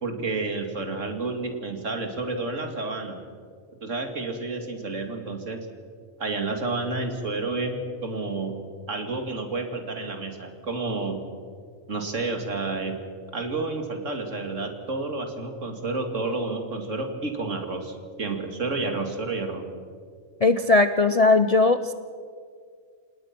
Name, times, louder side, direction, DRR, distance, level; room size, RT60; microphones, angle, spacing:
voice 1, 0.0-3.2 3.8-5.6 6.2-8.5 8.9-11.2 11.9-13.0 13.3-19.6, right 3 dB, 80° right, 5 dB, 2.7 m, -30 dB
voice 2, 20.4-21.9, left 3 dB, 40° left, 10 dB, 0.6 m, -19 dB
28.0 x 18.5 x 6.0 m, 2.1 s
omnidirectional pair, 1.3 m